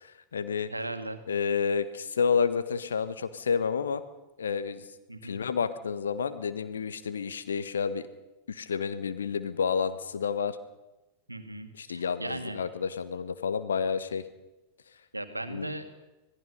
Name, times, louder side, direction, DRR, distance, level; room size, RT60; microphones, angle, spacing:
voice 1, 0.0-0.7 1.3-4.0 4.4-4.8 5.2-8.1 8.5-10.6 11.7-14.2 15.5-15.7, left 6 dB, 70° left, 12 dB, 1.3 m, -30 dB
voice 2, 0.7-1.2 5.1-5.4 11.3-12.6 15.1-16.0, right 2 dB, 85° right, 8 dB, 1.8 m, -37 dB
26.0 x 18.0 x 5.6 m, 1.0 s
figure-of-eight pair, 90°, 0 cm